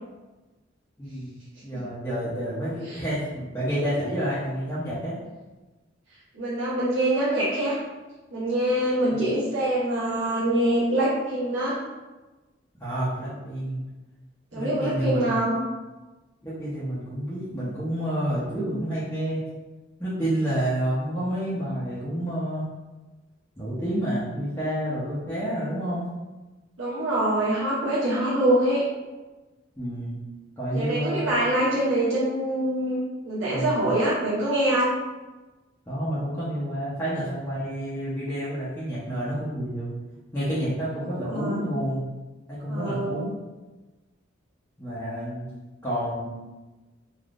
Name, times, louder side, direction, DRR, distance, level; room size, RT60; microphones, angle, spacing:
voice 1, 1.0-1.4 1.6-5.1 9.1-9.2 12.8-13.8 14.5-15.3 16.4-19.4 20.0-22.7 23.6-26.1 29.8-30.2 30.6-31.3 33.5-33.9 35.9-39.9 40.3-42.0 42.5-43.3 44.8-45.5 45.8-46.3, right 1 dB, 10° left, -12 dB, 0.7 m, -29 dB
voice 2, 6.3-7.8 8.3-11.8 14.5-15.6 26.8-28.8 30.7-33.0 33.2-34.9 41.0-41.7 42.7-43.3, right 1 dB, 75° right, -9 dB, 0.8 m, -24 dB
3.4 x 2.5 x 2.4 m, 1.2 s
head